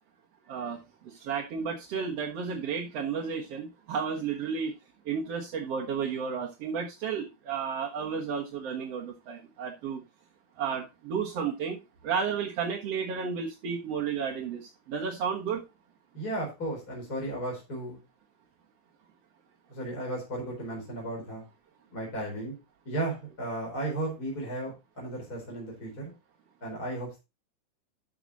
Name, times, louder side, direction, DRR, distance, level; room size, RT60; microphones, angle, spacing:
voice 1, 0.5-0.8 1.0-4.7 5.1-10.0 10.6-11.8 12.0-15.6, right 6 dB, 55° right, -1 dB, 2.3 m, -32 dB
voice 2, 16.1-18.0 19.7-21.4 21.9-22.5 22.8-26.1 26.6-27.2, right 1 dB, 30° left, -3 dB, 4.6 m, -35 dB
12.5 x 6.0 x 4.0 m, 0.26 s
omnidirectional pair, 3.6 m